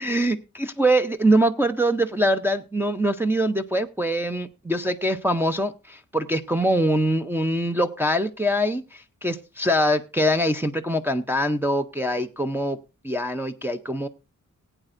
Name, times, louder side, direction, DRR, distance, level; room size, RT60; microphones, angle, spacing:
voice 1, 0.0-12.8 13.0-14.1, equal, 5° right, 4 dB, 0.5 m, -23 dB
19.5 x 8.9 x 2.5 m, 0.27 s
wide cardioid pair, 165°, 31 cm